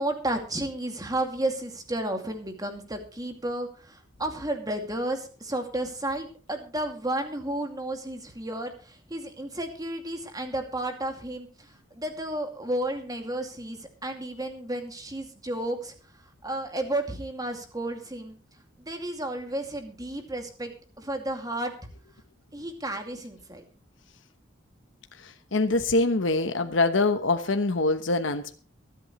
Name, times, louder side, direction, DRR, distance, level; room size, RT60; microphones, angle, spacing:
voice 1, 0.0-15.9 16.4-18.4 18.8-21.7 22.5-23.6, right 1 dB, 20° right, 4 dB, 2.4 m, -32 dB
voice 2, 25.2-28.6, left 2 dB, 75° left, 7 dB, 1.1 m, -24 dB
23.5 x 8.6 x 3.1 m, 0.40 s
head